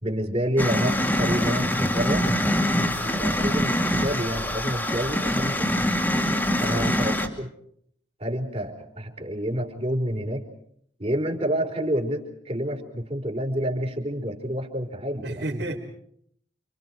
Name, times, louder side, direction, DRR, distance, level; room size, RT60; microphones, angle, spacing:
voice 1, 0.0-2.3 3.0-5.7 6.3-7.5 8.2-10.4 11.0-15.6, equal, 35° right, 2 dB, 4.2 m, -29 dB
sound 1, 0.6-7.3, left 1 dB, 10° left, 2.5 m, -24 dB
voice 2, 6.7-7.1 15.2-15.8, right 1 dB, 70° right, -5 dB, 4.3 m, -33 dB
30.0 x 27.0 x 4.7 m, 0.67 s
head